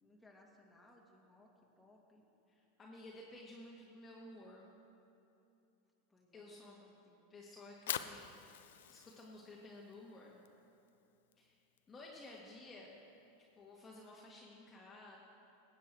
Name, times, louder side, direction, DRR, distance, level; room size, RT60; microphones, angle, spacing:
voice 1, 0.0-2.2 6.1-7.2, left 2 dB, 5° left, -2 dB, 2.1 m, -65 dB
voice 2, 2.5-4.7 6.3-6.8 7.3-10.4 11.4-11.5 11.9-13.0 13.6-15.2, left 2 dB, 25° left, -3 dB, 1.6 m, -54 dB
Fire, 7.6-13.8, left 11 dB, 75° left, 0.5 m, -48 dB
17.5 x 8.5 x 4.5 m, 2.8 s
hypercardioid pair, 100°, 0 cm